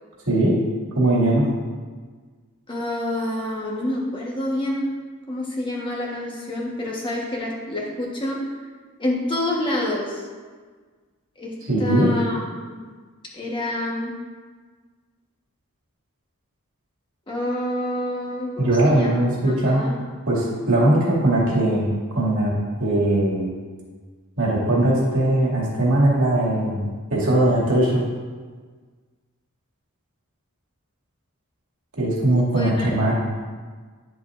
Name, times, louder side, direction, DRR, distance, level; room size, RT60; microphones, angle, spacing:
voice 1, 0.9-1.5 11.7-12.1 18.6-19.8 20.3-22.5 22.8-23.5 24.4-28.0 32.0-33.1, right 1 dB, 65° right, -6 dB, 2.4 m, -20 dB
voice 2, 2.7-4.9 5.3-8.4 9.0-10.2 11.4-11.5 11.8-12.4 12.7-12.8 13.3-14.1 17.3-19.9 32.5-32.9, left 1 dB, 25° left, -3 dB, 1.3 m, -27 dB
10.5 x 7.1 x 2.6 m, 1.5 s
head